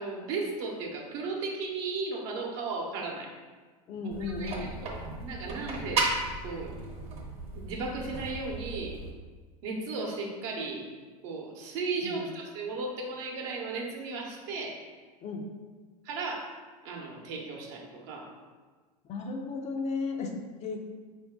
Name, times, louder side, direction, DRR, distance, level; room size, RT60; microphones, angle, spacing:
voice 1, 0.0-3.3 4.2-6.1 6.4-6.8 7.5-9.0 9.6-10.8 11.2-14.8 16.0-16.6 16.8-18.3, right 3 dB, 55° right, 0 dB, 0.9 m, -35 dB
voice 2, 3.9-4.7 12.0-12.3 15.2-15.4 19.1-20.8, left 3 dB, 35° left, 2 dB, 0.5 m, -35 dB
sound 1, 4.1-9.1, right 3 dB, 30° right, 0.9 m, -35 dB
4.3 x 2.6 x 3.7 m, 1.4 s
hypercardioid pair, 85°, 19 cm